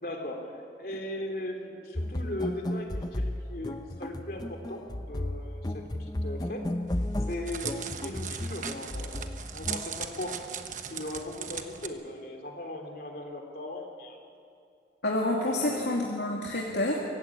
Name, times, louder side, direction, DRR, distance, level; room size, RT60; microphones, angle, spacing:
voice 1, 0.0-6.6 7.3-9.2 9.5-10.4 10.9-14.2 15.5-15.9, left 1 dB, 55° left, 2 dB, 3.4 m, -38 dB
sound 1, 2.0-9.8, left 1 dB, 20° left, 0.6 m, -34 dB
Crackle, 6.9-11.9, right 8 dB, 45° right, 1.2 m, -38 dB
voice 2, 15.0-17.0, left 1 dB, 80° left, -2 dB, 2.5 m, -28 dB
25.0 x 16.0 x 8.7 m, 2.4 s
head